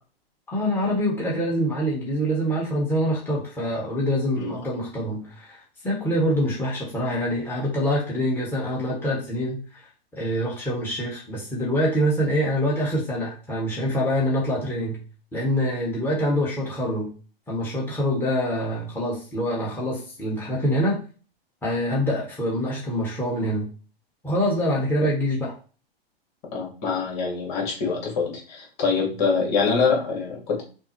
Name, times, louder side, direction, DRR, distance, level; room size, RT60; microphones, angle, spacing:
voice 1, 0.5-9.8 10.2-15.0 15.3-17.1 17.5-21.0 21.6-23.7 24.2-25.5, equal, 5° left, -5 dB, 1.6 m, -25 dB
voice 2, 26.5-30.6, left 5 dB, 45° left, -1 dB, 2.2 m, -24 dB
5.9 x 2.5 x 3.3 m, 0.37 s
figure-of-eight pair, 110°, 30 cm